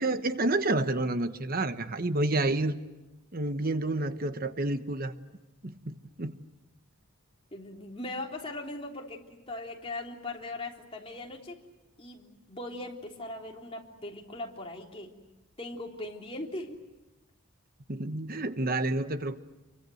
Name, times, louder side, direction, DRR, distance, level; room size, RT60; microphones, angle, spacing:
voice 1, 0.0-2.8 3.3-5.1 5.6-6.4 17.9-19.4, right 2 dB, 40° right, 10 dB, 1.1 m, -29 dB
voice 2, 7.5-11.6 12.0-15.2 15.6-16.8, left 2 dB, 25° left, 0 dB, 3.4 m, -39 dB
29.0 x 24.5 x 7.9 m, 1.0 s
head